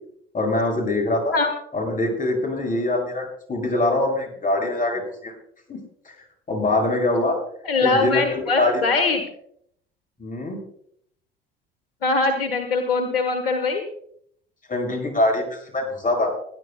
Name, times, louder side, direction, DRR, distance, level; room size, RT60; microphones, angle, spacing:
voice 1, 0.3-1.4 1.7-5.3 5.7-5.8 6.5-7.4 7.8-8.8 10.2-10.6 14.7-16.3, left 2 dB, 30° left, 2 dB, 7.2 m, -23 dB
voice 2, 7.6-9.2 12.0-13.8, left 3 dB, 80° left, 7 dB, 1.3 m, -22 dB
30.0 x 10.5 x 2.3 m, 0.67 s
figure-of-eight pair, 60°, 29 cm